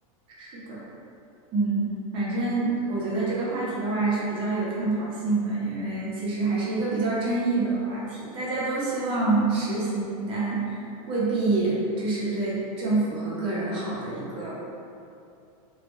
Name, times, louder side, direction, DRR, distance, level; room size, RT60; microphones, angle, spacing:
voice 1, 0.4-0.8 1.5-1.9 2.1-14.5, right 3 dB, 30° right, -6 dB, 0.6 m, -27 dB
2.2 x 2.0 x 3.0 m, 2.6 s
supercardioid pair, 150°, 18 cm